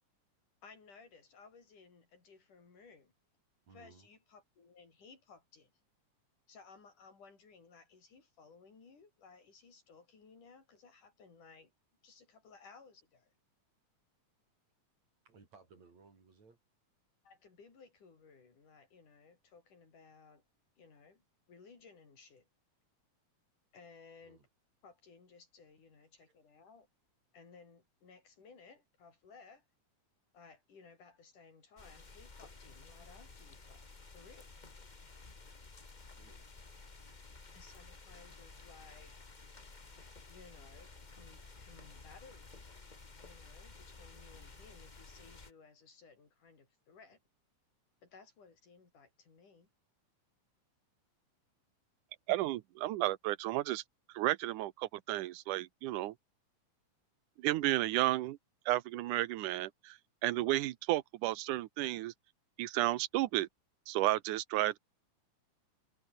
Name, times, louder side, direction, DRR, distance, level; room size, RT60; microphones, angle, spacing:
voice 1, 0.6-3.1 3.7-5.7 6.5-11.7 12.0-13.3 17.2-20.4 20.8-21.2 21.5-22.5 23.7-24.4 24.8-26.9 27.3-29.7 30.3-34.5 37.5-39.1 40.3-42.7 43.2-47.2 48.0-49.7, left 5 dB, 90° left, 6.9 m, -59 dB
voice 2, 3.7-4.1 15.2-16.6 24.2-24.5 26.0-26.1 36.1-36.5, right 4 dB, 60° right, 6.4 m, -61 dB
sound 1, 31.8-45.5, left 3 dB, 25° left, 1.0 m, -54 dB
voice 3, 52.3-53.8 54.1-56.1 57.4-58.4 58.7-62.1 62.6-63.5 63.9-64.8, right 16 dB, 90° right, 2.4 m, -32 dB
omnidirectional pair, 3.5 m